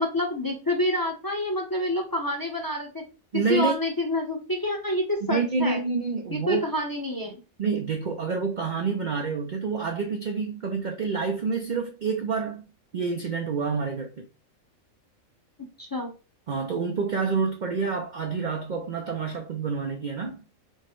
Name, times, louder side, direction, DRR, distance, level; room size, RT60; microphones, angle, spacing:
voice 1, 0.0-3.0 3.5-5.8 6.3-7.4 15.8-16.1, left 1 dB, 20° left, 0.7 m, -28 dB
voice 2, 3.3-3.8 5.3-6.6 7.6-12.6 12.9-14.3 16.5-20.4, right 5 dB, 55° right, 0.5 m, -28 dB
4.6 x 2.1 x 4.5 m
omnidirectional pair, 1.4 m